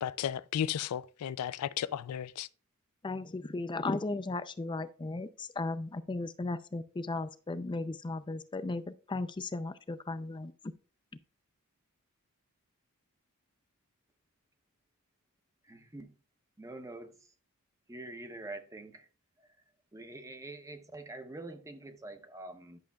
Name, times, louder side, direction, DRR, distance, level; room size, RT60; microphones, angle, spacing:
voice 1, 0.0-2.5, left 9 dB, 90° left, 0.3 m, -34 dB
voice 2, 3.0-10.5, left 2 dB, 20° left, 0.4 m, -36 dB
voice 3, 15.7-16.1 16.6-17.1 17.9-18.9 19.9-22.8, right 2 dB, 15° right, 0.7 m, -45 dB
10.5 x 6.3 x 2.3 m
head